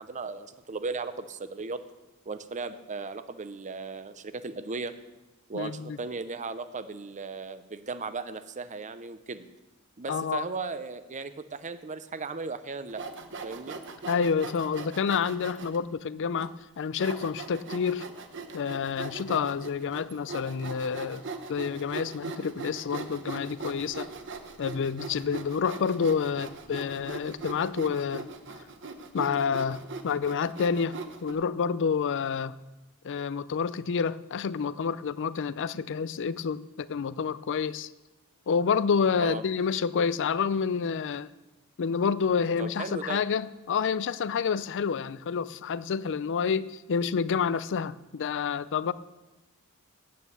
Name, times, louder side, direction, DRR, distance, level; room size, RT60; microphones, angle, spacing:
voice 1, 0.0-1.9 2.3-5.0 5.5-9.5 10.0-13.0 13.4-13.8 39.2-39.4 42.6-43.2, right 4 dB, 35° right, 12 dB, 0.6 m, -36 dB
voice 2, 5.5-6.0 10.1-10.4 14.1-18.1 18.5-21.2 21.5-24.1 24.6-28.3 29.1-31.0 31.2-32.5 33.0-37.9 38.5-41.3 41.8-48.9, left 6 dB, 55° left, 17 dB, 0.4 m, -28 dB
Sawing, 12.9-15.8 16.4-16.5 17.0-31.3, right 4 dB, 55° right, 1.0 m, -40 dB
9.1 x 8.5 x 7.9 m, 1.1 s
head